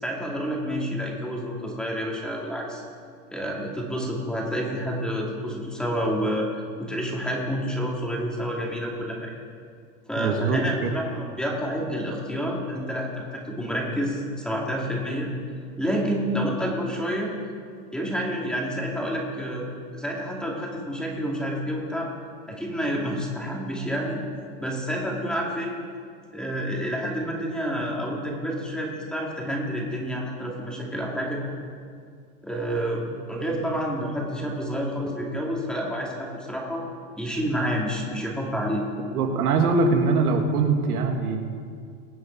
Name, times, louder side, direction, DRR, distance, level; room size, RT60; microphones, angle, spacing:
voice 1, 0.0-2.8 3.3-9.3 10.1-15.3 15.8-17.3 17.9-19.7 19.9-22.1 22.5-24.2 24.6-25.7 26.3-31.4 32.4-36.8 37.2-38.9, equal, ahead, -2 dB, 2.3 m, -29 dB
voice 2, 10.2-10.9 39.1-41.4, right 4 dB, 80° right, 3 dB, 2.3 m, -22 dB
24.0 x 8.8 x 4.6 m, 2.2 s
supercardioid pair, 150°, 44 cm